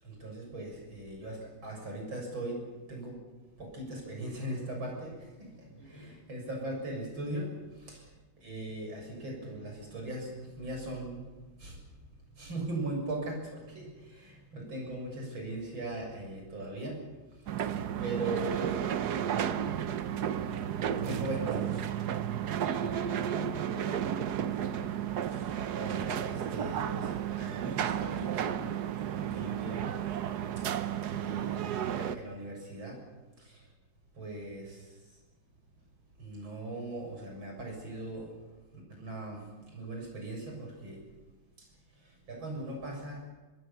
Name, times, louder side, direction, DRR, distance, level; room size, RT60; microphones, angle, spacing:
voice 1, 0.0-3.2 3.6-12.1 12.3-18.6 20.3-22.7 25.3-28.6 29.0-30.2 30.6-33.1 33.4-33.7 34.1-35.2 36.2-38.4 38.7-43.3, right 2 dB, 80° right, 1 dB, 7.6 m, -40 dB
voice 2, 5.8-6.2 18.0-20.2 20.5-20.7 22.6-24.3 24.6-24.9, equal, 10° left, 1 dB, 5.2 m, -46 dB
sound 1, 17.5-32.2, right 9 dB, 60° right, 1.3 m, -33 dB
26.5 x 20.0 x 7.0 m, 1.2 s
omnidirectional pair, 2.2 m